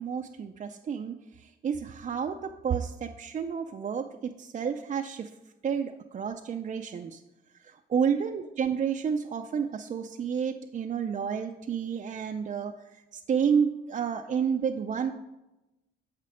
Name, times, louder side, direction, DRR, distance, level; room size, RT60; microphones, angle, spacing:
voice 1, 0.0-5.3 5.6-7.2 7.6-12.7 13.1-15.1, right 7 dB, 40° right, 4 dB, 0.4 m, -30 dB
7.3 x 5.8 x 4.9 m, 0.98 s
cardioid pair, 90°, 20 cm